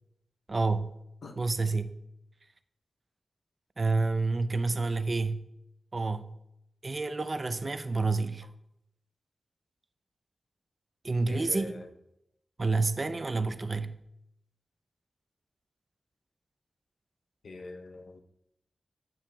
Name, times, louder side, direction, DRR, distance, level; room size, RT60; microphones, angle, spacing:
voice 1, 0.5-0.9 1.4-1.9 3.8-5.4 5.9-6.3 6.8-8.5 11.0-11.8 12.6-14.0, right 3 dB, 40° right, 12 dB, 0.4 m, -29 dB
voice 2, 11.3-11.9 17.4-18.2, left 2 dB, 75° left, 6 dB, 0.7 m, -43 dB
8.7 x 8.7 x 2.3 m, 0.83 s
wide cardioid pair, 80°, 0 cm